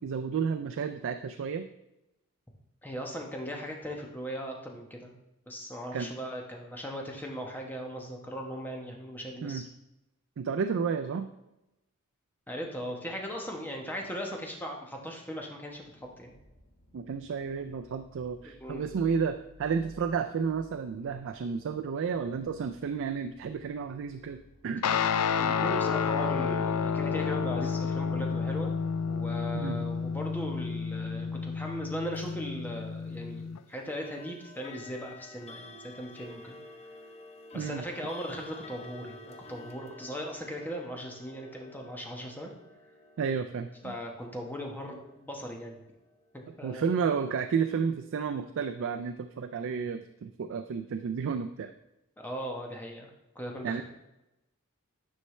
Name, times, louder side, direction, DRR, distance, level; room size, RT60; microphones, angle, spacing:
voice 1, 0.0-1.7 5.9-6.1 9.4-9.6 10.4-11.3 16.9-24.4 24.6-24.8 29.5-29.8 37.5-37.8 43.2-43.9 46.6-51.7 53.6-53.8, right 6 dB, 60° right, 8 dB, 0.4 m, -31 dB
voice 2, 2.8-5.1 5.5-9.6 12.5-16.3 18.4-18.8 25.4-28.7 29.1-36.6 37.5-42.5 43.8-45.8 46.3-46.9 52.2-53.1 53.3-53.8, equal, 10° left, 0 dB, 1.1 m, -38 dB
sound 1, 15.7-31.6, left 1 dB, 45° left, 1.4 m, -59 dB
Guitar, 24.8-33.6, left 6 dB, 80° left, 0.4 m, -30 dB
sound 2, 32.1-32.3 34.0-46.9, left 2 dB, 30° left, 0.7 m, -50 dB
9.7 x 5.5 x 3.2 m, 0.92 s
head